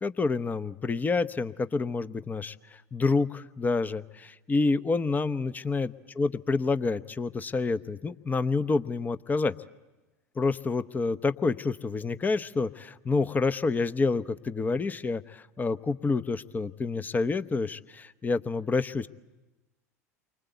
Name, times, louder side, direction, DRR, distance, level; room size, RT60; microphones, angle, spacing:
voice 1, 0.0-9.5 10.4-19.1, left 3 dB, 20° left, 13 dB, 0.8 m, -28 dB
29.0 x 24.5 x 8.2 m, 1.1 s
hypercardioid pair, 80°, 9 cm